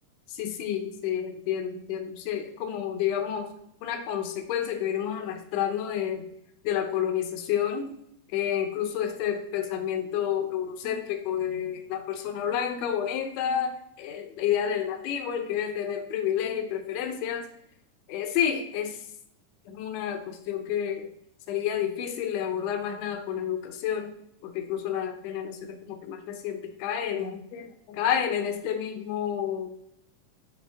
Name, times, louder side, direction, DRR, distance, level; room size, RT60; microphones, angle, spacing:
voice 1, 0.3-3.5 3.8-6.3 6.6-7.9 8.3-17.5 18.1-19.0 19.7-21.1 21.5-24.1 24.4-29.7, left 9 dB, 75° left, 6 dB, 1.6 m, -30 dB
10.5 x 3.6 x 3.4 m, 0.76 s
omnidirectional pair, 3.7 m